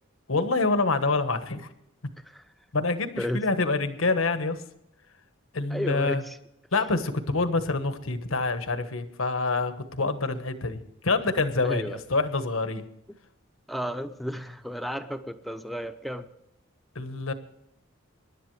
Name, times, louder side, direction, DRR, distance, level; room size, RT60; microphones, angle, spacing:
voice 1, 0.3-1.7 2.7-4.6 5.5-6.2 6.7-11.8 12.1-12.8 16.9-17.3, left 3 dB, 80° left, 9 dB, 1.3 m, -26 dB
voice 2, 5.7-6.4 11.6-12.0 13.7-16.2, equal, ahead, 7 dB, 0.7 m, -32 dB
24.5 x 11.5 x 3.3 m, 0.81 s
head